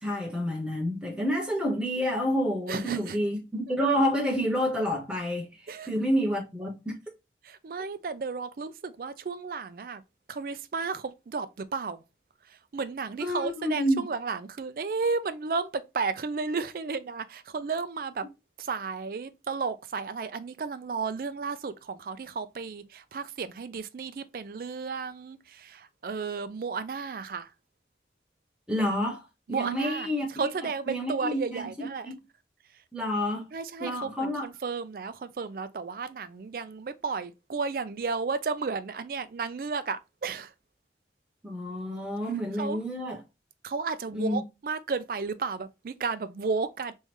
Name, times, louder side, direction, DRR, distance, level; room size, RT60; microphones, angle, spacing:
voice 1, 0.0-7.0 13.2-14.0 28.7-30.5 30.9-32.1 32.9-33.5 33.8-34.5 41.4-43.2 44.1-44.4, equal, 5° right, 1.0 m, -29 dB
voice 2, 2.7-3.2 5.7-5.9 7.4-10.0 10.3-11.5 11.7-12.0 12.7-18.2 18.6-27.5 29.5-32.1 33.5-40.5 42.6-42.8 43.6-46.9, right 4 dB, 50° right, 0.4 m, -33 dB
3.6 x 3.1 x 2.9 m
head